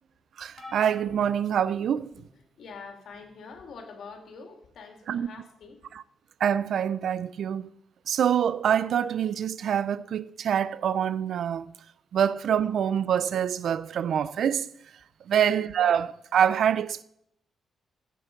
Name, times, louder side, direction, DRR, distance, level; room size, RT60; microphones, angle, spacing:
voice 1, 0.4-2.1 5.1-5.3 5.9-6.0 6.4-7.7 8.1-11.7 12.1-14.7 15.3-17.0, right 8 dB, 65° right, 0.5 m, -25 dB
sound 1, 0.6-2.4 3.1-3.4 4.7-4.8, left 2 dB, 25° left, 4.8 m, -48 dB
voice 2, 2.6-5.8 15.3-15.5, left 4 dB, 65° left, 2.6 m, -45 dB
14.5 x 8.5 x 5.3 m
cardioid pair, 135°, 0 cm